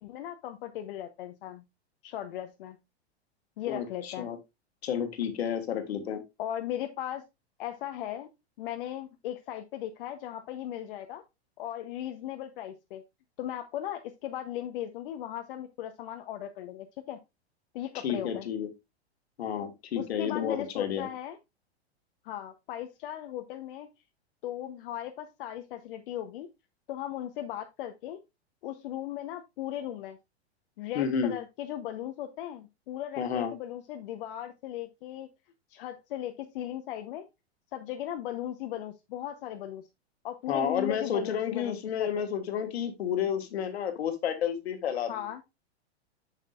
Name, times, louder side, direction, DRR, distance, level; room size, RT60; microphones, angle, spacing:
voice 1, 0.0-1.6 2.0-2.8 3.6-4.3 6.4-7.2 7.6-8.3 8.6-11.2 11.6-13.0 13.4-17.2 17.7-18.5 19.9-21.4 22.2-23.9 24.4-26.5 26.9-28.2 28.6-30.2 30.8-35.3 35.7-37.3 37.7-39.9 40.2-42.1 45.1-45.4, left 11 dB, 55° left, 7 dB, 0.8 m, -37 dB
voice 2, 3.7-4.4 4.8-6.2 18.0-18.7 19.4-21.1 30.9-31.3 33.2-33.5 40.5-45.1, left 8 dB, 70° left, 8 dB, 1.6 m, -31 dB
7.4 x 6.6 x 2.4 m, 0.22 s
hypercardioid pair, 105°, 33 cm